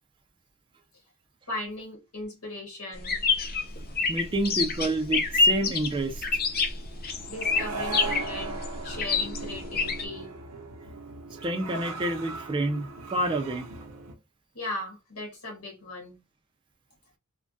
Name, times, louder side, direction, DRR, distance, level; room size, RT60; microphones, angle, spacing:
voice 1, 1.5-3.2 7.3-10.3 14.5-16.2, left 2 dB, 80° left, 1.5 m, -38 dB
sound 1, 3.0-10.0, left 4 dB, 40° left, 0.5 m, -27 dB
sound 2, 3.8-14.2, right 3 dB, 90° right, 0.7 m, -40 dB
voice 2, 4.1-6.3 11.4-13.7, right 1 dB, 20° right, 0.4 m, -28 dB
3.3 x 2.2 x 2.5 m
head